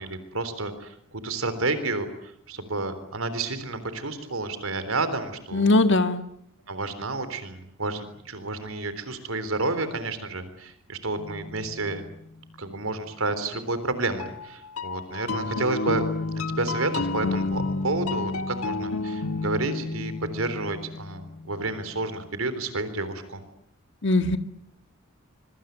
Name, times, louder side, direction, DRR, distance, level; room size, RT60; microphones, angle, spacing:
voice 1, 0.0-5.8 6.7-12.0 12.6-16.0 16.5-23.4, right 2 dB, 80° right, 11 dB, 3.7 m, -30 dB
voice 2, 5.5-6.2 24.0-24.4, left 2 dB, 60° left, 8 dB, 1.8 m, -20 dB
sound 1, 11.2-12.3 14.2-21.9, left 3 dB, 90° left, 1.5 m, -31 dB
25.0 x 24.0 x 9.2 m, 0.71 s
head